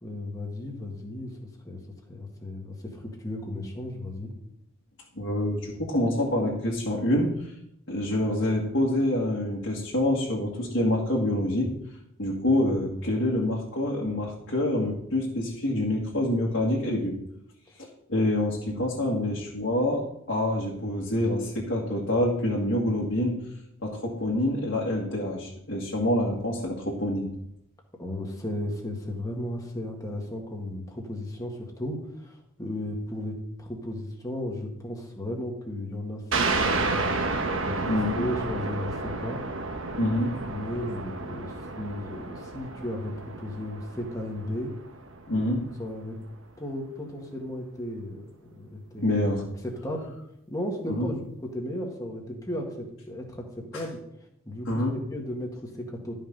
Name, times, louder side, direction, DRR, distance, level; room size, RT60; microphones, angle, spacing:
voice 1, 0.0-1.8 2.1-4.3 12.7-12.8 18.8-19.2 28.0-37.2 37.6-39.4 40.5-44.7 45.3-45.5 45.8-46.2 46.6-48.3 48.6-49.2 49.6-50.1 50.5-54.0 54.5-56.2, left 1 dB, 15° left, 0 dB, 1.8 m, -35 dB
voice 2, 5.2-7.5 7.9-11.7 12.2-17.1 18.1-23.4 23.8-27.3 37.9-38.3 40.0-40.4 45.3-45.6 49.0-49.4 50.9-51.1 53.7-53.8 54.7-55.0, left 1 dB, 60° left, -5 dB, 2.1 m, -26 dB
sound 1, 36.3-45.5, right 3 dB, 65° right, 1.2 m, -31 dB
12.5 x 5.7 x 5.5 m, 0.76 s
head